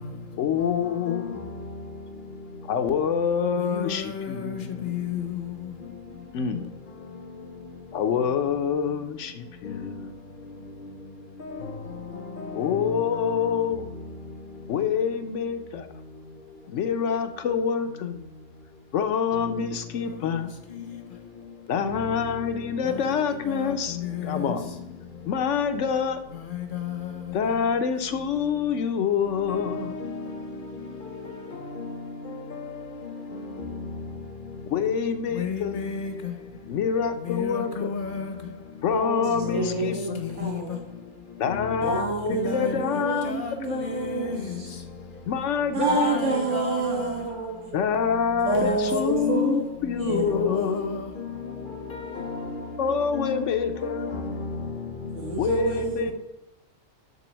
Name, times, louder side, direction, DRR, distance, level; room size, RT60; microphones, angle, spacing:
voice 1, 0.4-1.5 2.6-4.9 6.3-6.7 7.9-10.1 12.5-13.8 14.7-15.9 16.7-18.2 18.9-20.5 21.7-24.0 24.2-24.7 25.3-26.2 27.3-30.0 34.7-35.7 36.7-37.9 38.8-40.3 41.4-43.3 43.7-43.9 45.3-46.2 47.7-50.9 52.8-54.1 55.4-56.1, left 7 dB, 75° left, 1.0 m, -26 dB
voice 2, 3.6-5.4 11.4-11.7 12.4-13.0 23.0-23.1 23.5-24.5 26.3-27.0 29.5-30.3 31.5-31.9 32.3-32.7 33.3-33.7 35.3-36.3 37.2-38.3 39.3-39.9 40.2-40.6 41.5-41.6 42.3-42.9 43.2-43.5 43.8-44.6 45.9-47.1 48.6-48.8 49.1-49.6 50.1-51.0 51.9-52.6 53.1-53.4 53.8-54.7, left 6 dB, 45° left, 0.8 m, -33 dB
voice 3, 38.9-39.2 39.5-40.8 41.8-44.7 45.7-47.7 48.4-49.6 50.0-51.0 55.1-56.1, right 3 dB, 70° right, 1.9 m, -28 dB
6.9 x 3.7 x 6.2 m
omnidirectional pair, 1.3 m